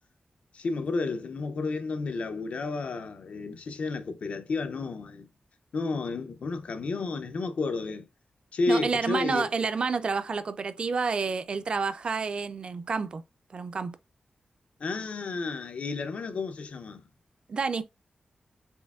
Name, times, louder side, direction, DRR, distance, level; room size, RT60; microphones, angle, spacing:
voice 1, 0.5-5.3 5.7-8.1 8.5-9.5 14.8-17.0, left 3 dB, 60° left, 0.4 m, -31 dB
voice 2, 8.7-13.2 13.5-14.0 17.5-17.8, right 5 dB, 40° right, 0.3 m, -29 dB
4.3 x 3.4 x 2.3 m
wide cardioid pair, 175°, 3 cm